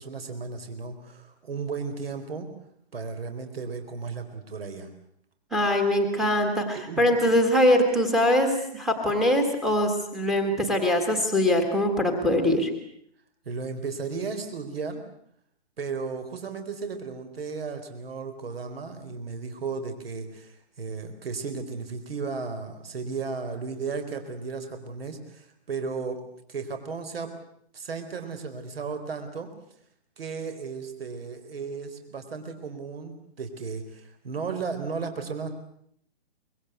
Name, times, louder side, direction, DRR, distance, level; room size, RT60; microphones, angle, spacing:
voice 1, 0.0-2.5 2.9-4.9 6.7-7.1 13.5-15.0 15.8-26.2 26.5-27.3 27.7-29.5 30.2-35.5, right 5 dB, 65° right, 8 dB, 4.4 m, -34 dB
voice 2, 5.5-12.7, left 1 dB, ahead, 4 dB, 1.7 m, -23 dB
25.0 x 22.5 x 8.1 m, 0.68 s
hypercardioid pair, 180°, 32 cm